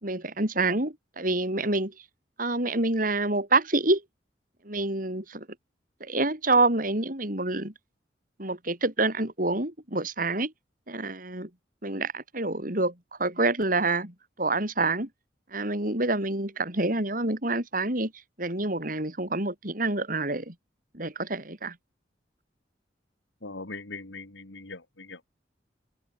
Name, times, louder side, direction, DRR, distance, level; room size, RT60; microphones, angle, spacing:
voice 1, 0.0-1.9 2.4-4.0 4.6-5.5 6.0-7.7 8.4-10.5 10.9-11.5 11.8-12.9 13.2-15.1 15.5-18.1 18.4-20.5 20.9-21.7, right 2 dB, 50° right, 4.9 m, -27 dB
voice 2, 23.4-25.3, left 3 dB, 90° left, 2.5 m, -41 dB
open air
head